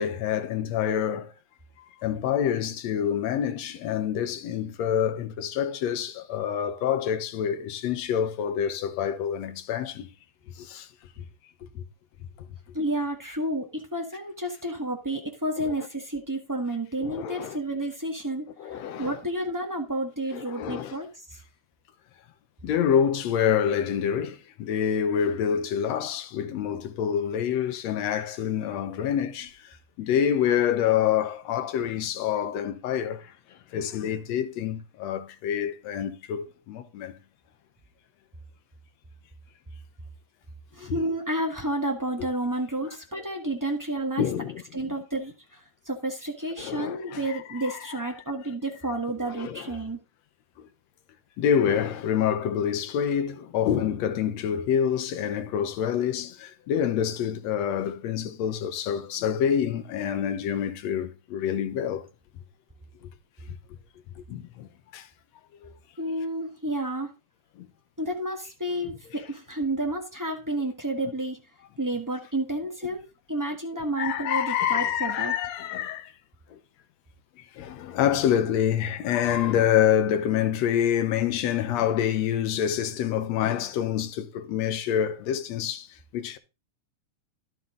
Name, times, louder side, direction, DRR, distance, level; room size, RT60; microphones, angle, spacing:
voice 1, 0.0-1.3 2.0-10.1 10.6-10.9 11.2-11.3 11.8-11.9 15.6-15.7 17.0-17.6 18.6-19.2 20.3-21.0 22.6-33.3 33.7-37.2 40.8-40.9 44.2-44.9 46.6-48.0 49.2-49.7 50.6-50.7 51.4-62.1 63.0-63.1 64.3-65.1 65.6-65.7 67.6-67.7 74.0-76.1 76.5-76.6 77.4-86.4, left 9 dB, 70° left, 2.1 m, -27 dB
voice 2, 12.7-21.4 40.7-44.2 44.7-50.0 66.0-67.1 68.0-71.4 71.8-73.0 73.3-75.3, right 1 dB, 10° right, 0.8 m, -31 dB
12.0 x 7.8 x 3.8 m
omnidirectional pair, 3.4 m